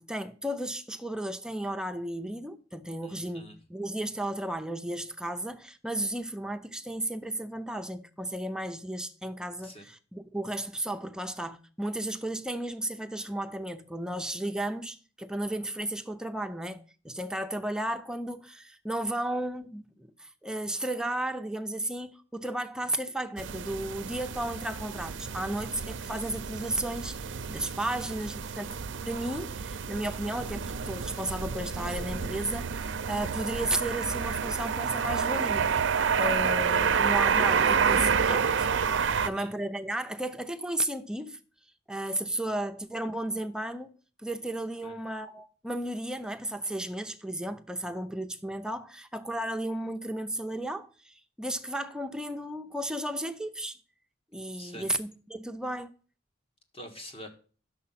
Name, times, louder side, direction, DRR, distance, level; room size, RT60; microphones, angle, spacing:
voice 1, 0.0-28.8 29.1-35.7 36.2-38.7 39.0-41.4 41.9-43.9 44.2-53.8 54.3-55.9, right 1 dB, 5° right, 0.6 m, -34 dB
voice 2, 3.0-3.6 9.6-9.9 27.9-28.0 39.1-39.5 42.4-42.5 44.8-44.9 54.5-54.9 56.7-57.3, equal, 30° left, 1.5 m, -46 dB
sound 1, 23.4-39.3, right 6 dB, 65° right, 0.5 m, -29 dB
9.9 x 6.7 x 5.7 m
head